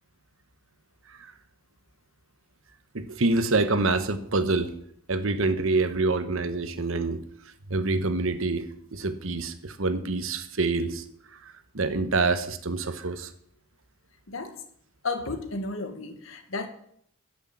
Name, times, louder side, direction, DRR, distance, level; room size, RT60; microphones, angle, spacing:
voice 1, 2.9-4.7 5.1-13.3, right 3 dB, 65° right, 10 dB, 1.1 m, -27 dB
voice 2, 14.3-14.6 15.0-16.7, left 3 dB, 65° left, 8 dB, 1.5 m, -33 dB
11.5 x 6.5 x 7.5 m, 0.68 s
head